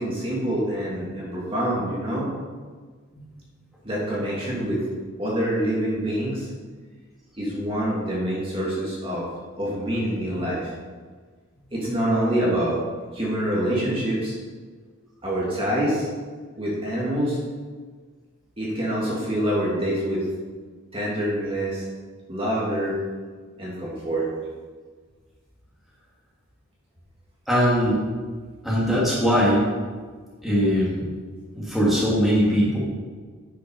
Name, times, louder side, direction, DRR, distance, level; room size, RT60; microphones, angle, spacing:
voice 1, 0.0-2.3 3.8-4.8 5.2-6.5 7.4-9.3 9.6-10.7 11.7-12.8 13.1-14.4 15.2-16.1 16.6-17.4 18.6-20.3 20.9-21.8 22.3-23.0 23.6-24.3, right 1 dB, 25° right, -6 dB, 2.1 m, -26 dB
voice 2, 27.5-28.0 28.6-29.7 30.4-31.1 31.5-32.8, equal, ahead, -7 dB, 2.2 m, -20 dB
9.3 x 5.9 x 5.4 m, 1.5 s
head